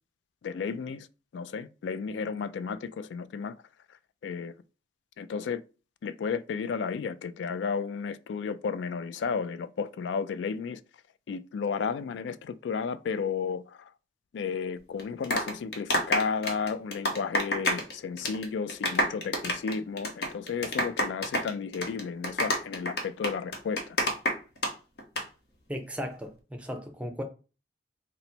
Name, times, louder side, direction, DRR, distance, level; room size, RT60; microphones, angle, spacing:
voice 1, 0.4-1.1 1.3-3.6 4.2-4.5 5.2-5.6 6.0-10.8 11.3-13.9 14.3-24.0, left 5 dB, 80° left, 0.3 m, -33 dB
sound 1, 15.0-17.9 18.2-18.4 18.7-24.7 25.0-25.2, left 1 dB, 65° left, 0.9 m, -28 dB
voice 2, 25.7-27.2, equal, 5° right, 0.5 m, -36 dB
4.0 x 2.0 x 4.2 m
head